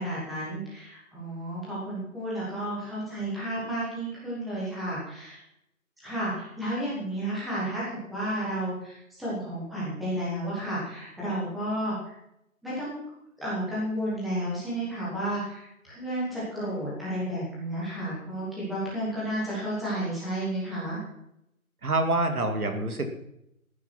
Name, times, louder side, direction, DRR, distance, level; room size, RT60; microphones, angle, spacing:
voice 1, 0.0-5.4 6.0-12.1 12.6-13.0 13.4-21.0, right 1 dB, ahead, -9 dB, 1.4 m, -32 dB
voice 2, 21.8-23.1, right 2 dB, 85° right, 6 dB, 2.9 m, -26 dB
14.5 x 9.8 x 5.9 m, 0.79 s
hypercardioid pair, 170°, 43 cm